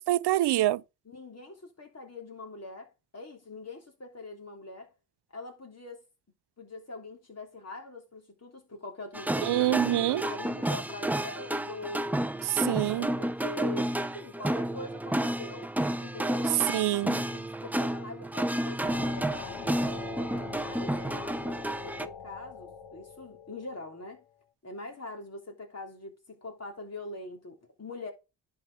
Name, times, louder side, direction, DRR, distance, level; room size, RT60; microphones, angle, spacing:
voice 1, 0.1-0.8 9.4-10.2 12.4-13.1 16.7-17.2, right 15 dB, 70° right, 0.5 m, -26 dB
voice 2, 1.0-4.9 5.3-6.1 6.6-12.1 12.5-15.7 16.0-16.5 17.3-24.2 24.6-28.1, left 2 dB, 35° left, 3.2 m, -43 dB
sound 1, 9.1-22.1, right 1 dB, 5° right, 0.6 m, -31 dB
sound 2, 18.8-24.3, left 7 dB, 80° left, 1.3 m, -44 dB
11.0 x 4.9 x 4.9 m
cardioid pair, 65°, 42 cm